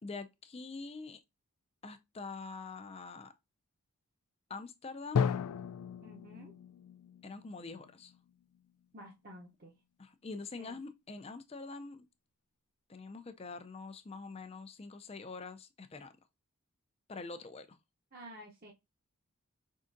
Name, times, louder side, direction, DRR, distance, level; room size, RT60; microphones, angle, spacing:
voice 1, 0.0-1.2 1.8-3.3 4.5-5.3 7.2-8.1 10.0-12.1 12.9-16.1 17.1-17.8, left 3 dB, 25° left, 0.4 m, -45 dB
Drum, 5.2-8.9, left 6 dB, 85° left, 0.3 m, -36 dB
voice 2, 6.0-6.6 8.9-9.8 10.6-10.8 18.1-18.7, equal, 40° right, 0.8 m, -51 dB
5.4 x 3.7 x 2.6 m
head